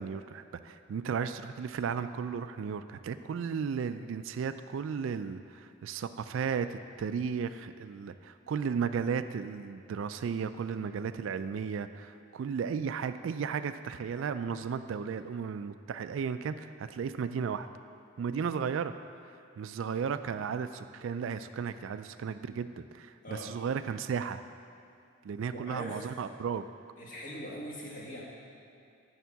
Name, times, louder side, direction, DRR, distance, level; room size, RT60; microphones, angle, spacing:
voice 1, 0.0-17.7 18.2-18.9 19.3-24.4 25.2-26.7, right 6 dB, 65° right, 11 dB, 0.3 m, -34 dB
voice 2, 25.5-26.0 27.0-28.2, equal, 40° left, -4 dB, 1.5 m, -41 dB
10.5 x 3.7 x 6.9 m, 2.5 s
head